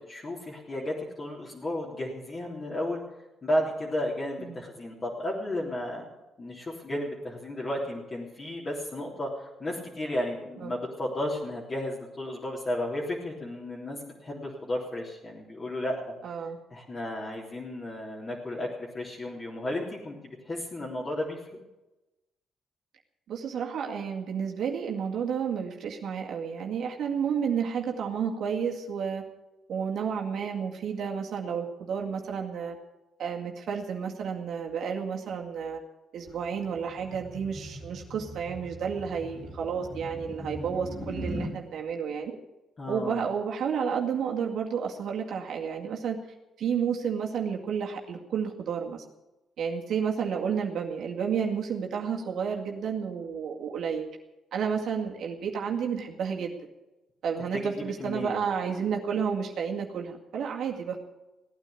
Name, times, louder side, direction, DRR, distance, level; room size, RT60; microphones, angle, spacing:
voice 1, 0.1-3.0 3.4-6.0 6.4-16.0 16.7-18.7 18.9-21.4 42.8-43.2 57.5-58.4, left 1 dB, 35° left, -4 dB, 3.4 m, -33 dB
voice 2, 16.2-16.6 23.3-29.2 29.7-32.8 33.2-35.8 36.1-42.4 42.9-46.2 46.6-49.0 49.6-54.1 54.5-56.5 57.2-61.0, right 7 dB, 70° right, 0 dB, 2.1 m, -31 dB
sound 1, 36.3-41.6, equal, 15° left, 3.1 m, -39 dB
17.0 x 9.3 x 8.5 m, 1.0 s
cardioid pair, 90°, 0 cm